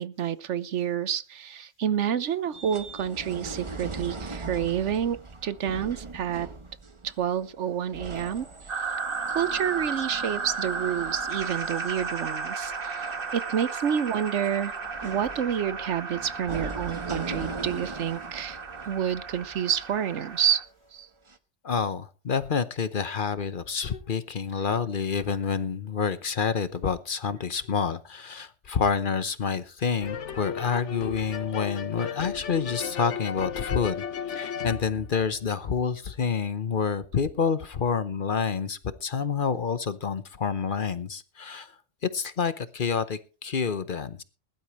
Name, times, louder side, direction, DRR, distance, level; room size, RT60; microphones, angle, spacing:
voice 1, 0.0-6.5 7.0-8.5 8.8-8.9 9.3-14.7 15.0-18.6 18.9-20.6 20.9-21.1, right 9 dB, 75° right, 1.1 m, -29 dB
sound 1, 2.5-20.7 21.3-21.4, right 3 dB, 25° right, 1.1 m, -41 dB
sound 2, 8.7-20.6, right 5 dB, 50° right, 1.6 m, -34 dB
voice 2, 21.6-41.7 42.0-44.2, left 6 dB, 50° left, 0.9 m, -28 dB
sound 3, 30.0-35.8, left 7 dB, 75° left, 1.3 m, -35 dB
20.5 x 12.0 x 3.1 m
omnidirectional pair, 1.2 m